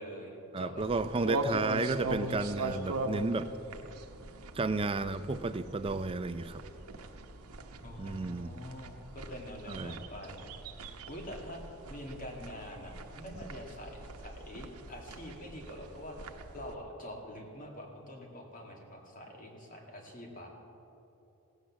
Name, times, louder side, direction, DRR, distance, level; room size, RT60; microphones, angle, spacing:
voice 1, 0.0-0.8 1.2-1.4 2.4-2.5 7.8-10.5 11.1-20.5, equal, 40° left, 1 dB, 2.1 m, -45 dB
voice 2, 0.5-3.5 4.6-6.6 8.0-8.5 9.7-10.0, right 3 dB, 25° right, 11 dB, 0.4 m, -32 dB
sound 1, 0.8-16.7, right 2 dB, 85° right, 0.9 m, -41 dB
16.5 x 8.2 x 7.2 m, 3.0 s
head